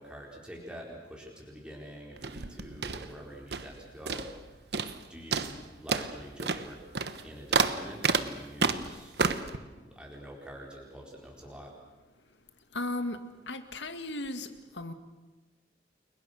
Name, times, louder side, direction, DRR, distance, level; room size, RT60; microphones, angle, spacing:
voice 1, 0.0-4.3 5.1-6.8 7.2-11.7, equal, 5° right, -2 dB, 4.2 m, -46 dB
sound 1, 2.2-3.8 4.1-4.4 4.7-5.0 5.3-9.6, right 4 dB, 65° right, 1.2 m, -30 dB
voice 2, 12.7-13.2 13.5-14.5 14.7-14.9, left 2 dB, 80° left, 8 dB, 2.2 m, -35 dB
30.0 x 22.5 x 6.7 m, 1.2 s
head